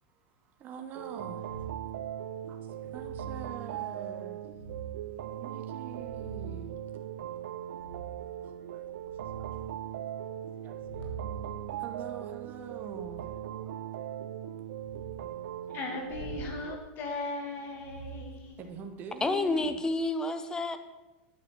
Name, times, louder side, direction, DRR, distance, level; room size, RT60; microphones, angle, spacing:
voice 1, 0.1-1.6 2.5-4.4 5.4-6.8 8.4-9.7 10.3-11.2 11.8-13.3 13.6-13.8 16.2-16.3 16.6-16.7 18.6-19.8, right 6 dB, 30° right, 5 dB, 1.2 m, -45 dB
sound 1, 0.9-16.8, right 11 dB, 80° right, 0.5 m, -39 dB
sound 2, 1.4-1.9 2.8-3.5 4.4-5.1 5.7-6.8 7.7-8.3 8.8-9.7 10.6-13.4 14.7-15.2 16.1-16.5 17.7-18.9 19.4-19.7, right 5 dB, 80° left, 2.5 m, -45 dB
voice 2, 15.7-18.6, left 3 dB, 35° left, 3 dB, 2.5 m, -38 dB
voice 3, 19.2-20.8, left 2 dB, 10° left, 10 dB, 0.8 m, -29 dB
9.5 x 7.2 x 6.5 m, 1.1 s
supercardioid pair, 145°, 6 cm